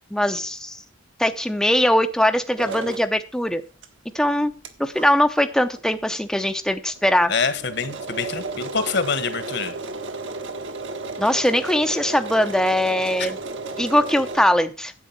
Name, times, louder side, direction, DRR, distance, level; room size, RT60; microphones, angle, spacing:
voice 1, 0.1-0.8 1.2-3.6 4.1-4.5 4.8-7.3 11.2-13.4 13.8-14.9, left 1 dB, 5° left, 0.6 m, -21 dB
sound 1, 2.6-3.1 3.8-3.9 4.3-4.4 4.6-4.7 4.9-5.1 5.8-5.9 6.1-6.2 6.5-6.6 6.9-14.4, right 3 dB, 70° right, 1.7 m, -33 dB
voice 2, 7.3-9.7 13.2-13.3, left 5 dB, 60° left, 1.4 m, -25 dB
10.0 x 8.1 x 5.8 m
head